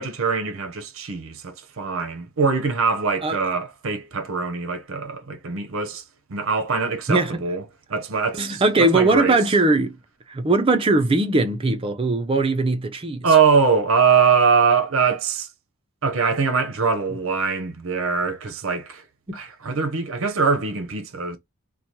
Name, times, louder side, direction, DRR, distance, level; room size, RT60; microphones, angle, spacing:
voice 1, 0.0-6.0 6.3-7.6 7.9-9.4 13.2-15.5 16.0-19.0 19.3-21.4, right 5 dB, 65° right, 0.6 m, -22 dB
voice 2, 7.1-7.4 8.3-10.0 10.3-13.2 19.3-19.4, right 2 dB, 25° right, 0.4 m, -20 dB
3.1 x 2.2 x 2.7 m
head